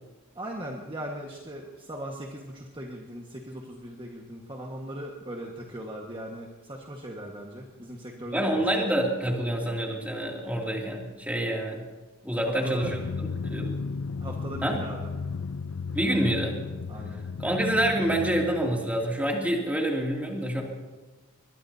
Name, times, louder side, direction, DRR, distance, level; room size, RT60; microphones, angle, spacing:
voice 1, 0.3-8.9 12.4-12.9 14.2-15.1 16.9-17.2, right 1 dB, 25° right, -1 dB, 1.5 m, -39 dB
voice 2, 8.3-11.8 12.2-13.0 13.4-13.7 14.6-14.8 15.9-16.6 17.4-20.6, right 1 dB, 5° right, -1 dB, 2.7 m, -27 dB
Drum, 12.8-19.3, left 4 dB, 80° left, 0.5 m, -35 dB
22.5 x 21.5 x 2.8 m, 1.3 s
head